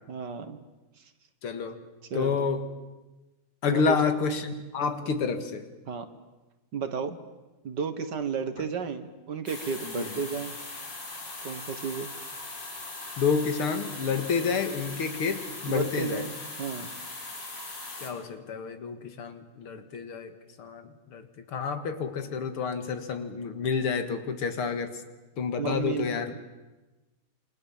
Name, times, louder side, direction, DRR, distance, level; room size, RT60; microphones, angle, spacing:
voice 1, 0.1-0.6 1.0-1.1 2.1-2.5 3.7-4.0 5.9-6.1 6.7-7.2 7.6-10.5 11.4-12.1 15.7-16.9 25.6-26.4, right 6 dB, 55° right, 9 dB, 2.0 m, -33 dB
voice 2, 1.4-1.8 2.1-2.6 3.6-5.6 9.9-10.1 13.2-16.2 18.0-20.3 20.6-24.9 25.4-26.3, left 5 dB, 85° left, 8 dB, 2.7 m, -29 dB
sound 1, 9.5-18.1, left 2 dB, 55° left, 4.3 m, -40 dB
28.0 x 25.5 x 7.3 m, 1.1 s
omnidirectional pair, 2.4 m